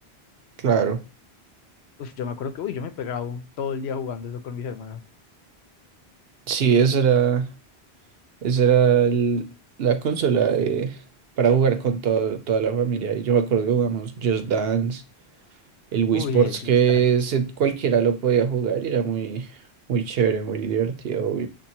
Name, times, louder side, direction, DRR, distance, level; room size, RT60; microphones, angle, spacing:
voice 1, 0.6-1.0 6.5-7.5 8.4-9.5 9.8-11.0 11.4-15.0 15.9-19.5 19.9-21.5, right 7 dB, 70° right, 0.9 m, -21 dB
voice 2, 2.0-5.0 16.1-17.1, left 6 dB, 80° left, 0.9 m, -31 dB
6.8 x 2.6 x 2.8 m
omnidirectional pair, 1.1 m